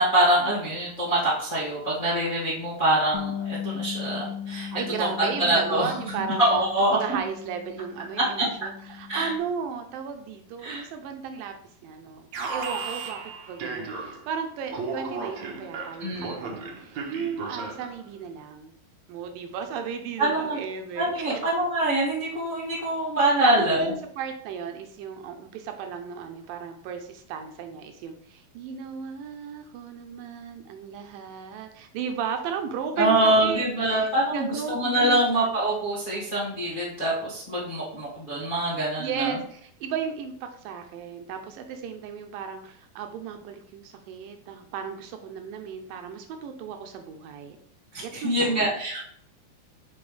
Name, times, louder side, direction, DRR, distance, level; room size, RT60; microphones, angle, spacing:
voice 1, 0.0-4.7 5.0-7.0 9.1-9.3 10.6-10.9 16.0-16.3 20.2-20.6 20.9-23.9 33.0-39.4 47.9-49.0, right 1 dB, 30° left, -8 dB, 0.9 m, -24 dB
Bass guitar, 3.1-9.4, left 8 dB, 80° left, 2.0 m, -37 dB
voice 2, 4.7-6.4 6.9-11.5 11.8-18.7 19.1-21.4 23.4-35.2 39.0-47.6 48.0-48.8, right 6 dB, 80° right, 5 dB, 2.2 m, -35 dB
Alarm, 12.3-14.3 14.7-18.0, right 4 dB, 65° right, 2.0 m, -35 dB
5.9 x 5.5 x 3.3 m, 0.66 s
omnidirectional pair, 4.2 m